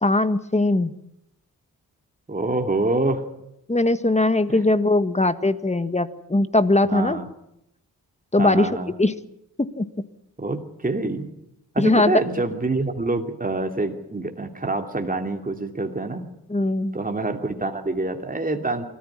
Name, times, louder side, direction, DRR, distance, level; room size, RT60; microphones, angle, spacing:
voice 1, 0.0-0.9 3.7-7.2 8.3-8.7 9.0-9.1 9.6-9.8 11.8-12.2 16.5-17.0, left 2 dB, 20° left, 12 dB, 1.6 m, -20 dB
voice 2, 2.3-3.3 4.5-4.6 6.9-7.3 8.4-8.9 10.4-11.3 11.7-16.3 16.9-18.8, right 2 dB, 20° right, 5 dB, 2.8 m, -26 dB
24.5 x 14.5 x 10.0 m, 0.82 s
cardioid pair, 65°, 38 cm